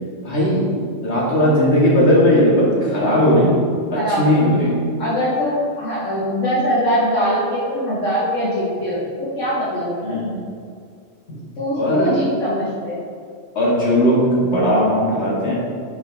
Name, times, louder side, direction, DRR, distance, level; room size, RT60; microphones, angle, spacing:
voice 1, 0.2-0.7 1.0-3.7 3.9-4.8 10.0-10.4 11.7-12.1 13.6-15.5, equal, 60° left, -6 dB, 2.1 m, -17 dB
voice 2, 3.9-4.5 5.0-10.2 11.3-13.0, equal, 75° left, -9 dB, 1.8 m, -22 dB
9.8 x 4.6 x 3.5 m, 2.2 s
omnidirectional pair, 1.3 m